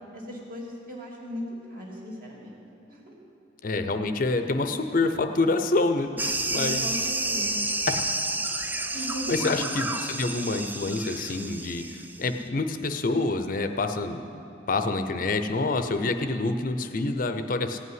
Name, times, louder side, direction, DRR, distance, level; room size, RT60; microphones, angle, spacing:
voice 1, 0.1-2.5 2.9-3.1 6.5-7.7 8.9-9.5, equal, 45° right, -2 dB, 2.6 m, -37 dB
voice 2, 3.6-6.9 7.9-8.0 9.3-14.2 14.7-17.8, left 3 dB, 45° left, 7 dB, 0.6 m, -27 dB
sound 1, 6.2-12.3, right 2 dB, 10° right, 0.4 m, -30 dB
16.0 x 5.5 x 9.5 m, 2.9 s
head